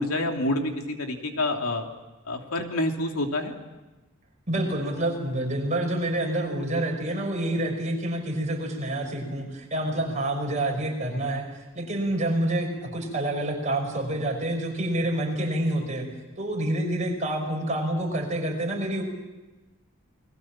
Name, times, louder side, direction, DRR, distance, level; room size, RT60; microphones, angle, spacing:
voice 1, 0.0-1.8 2.3-3.5, left 1 dB, 75° left, 3 dB, 3.0 m, -27 dB
voice 2, 4.5-11.5 11.8-16.1 16.4-19.0, right 1 dB, 35° right, 1 dB, 5.8 m, -27 dB
29.5 x 21.0 x 7.5 m, 1.1 s
head